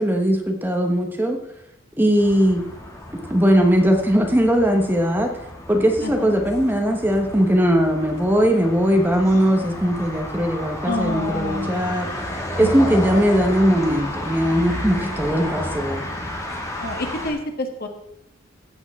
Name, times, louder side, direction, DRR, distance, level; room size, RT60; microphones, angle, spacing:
voice 1, 0.0-1.4 2.0-2.6 3.3-5.3 5.7-12.1 12.6-16.0, equal, 10° right, 3 dB, 1.2 m, -19 dB
sound 1, 2.2-17.3, left 1 dB, 15° left, 2.1 m, -32 dB
voice 2, 6.0-6.3 10.9-11.9 12.6-13.2 15.0-15.6 16.8-17.9, left 2 dB, 50° left, 5 dB, 1.4 m, -29 dB
15.0 x 8.1 x 3.6 m, 0.80 s
head